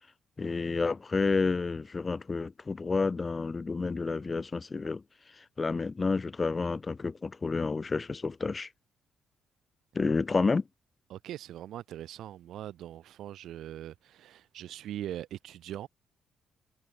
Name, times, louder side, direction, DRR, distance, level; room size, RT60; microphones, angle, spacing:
voice 1, 0.4-5.0 5.6-8.7 9.9-10.6, left 4 dB, 30° left, 0.5 m, -30 dB
voice 2, 11.1-15.9, right 12 dB, 75° right, 0.9 m, -41 dB
cardioid pair, 90°, 0 cm